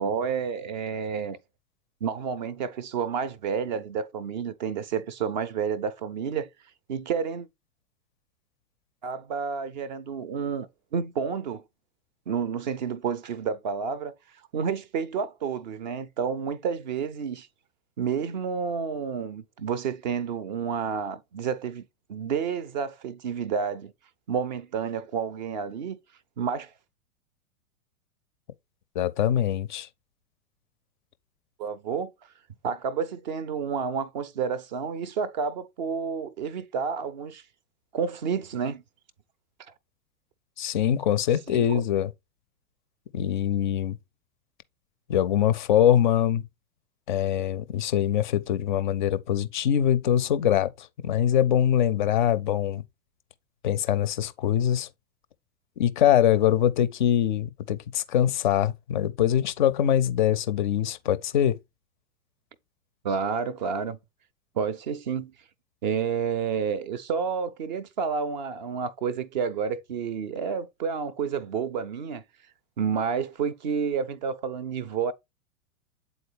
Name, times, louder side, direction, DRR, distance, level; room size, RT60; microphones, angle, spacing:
voice 1, 0.0-1.4 2.0-6.5 6.9-7.5 9.0-10.7 10.9-11.6 12.3-14.1 14.5-17.5 18.0-23.9 24.3-26.0 26.4-26.7 31.6-32.1 32.6-37.4 37.9-38.8 41.5-41.8 63.0-64.0 64.6-65.3 65.8-72.2 72.8-75.1, right 6 dB, 35° right, 0.4 m, -30 dB
voice 2, 29.0-29.9 40.6-42.1 43.1-44.0 45.1-46.4 47.1-52.8 53.6-54.9 55.8-61.6, left 10 dB, 35° left, 0.4 m, -23 dB
8.0 x 3.9 x 3.3 m
figure-of-eight pair, 100°, 44 cm